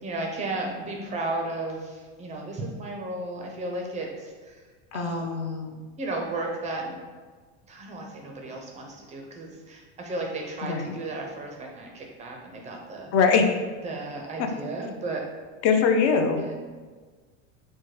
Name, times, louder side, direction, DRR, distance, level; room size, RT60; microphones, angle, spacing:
voice 1, 0.0-4.6 4.9-5.6 6.0-7.0 7.7-13.1 13.8-15.3, right 2 dB, 20° right, 1 dB, 0.4 m, -34 dB
voice 2, 4.9-5.8 10.6-10.9 13.1-13.5 14.4-14.5 15.6-16.5, left 5 dB, 45° left, 5 dB, 0.4 m, -23 dB
4.4 x 2.2 x 3.0 m, 1.4 s
supercardioid pair, 135°, 37 cm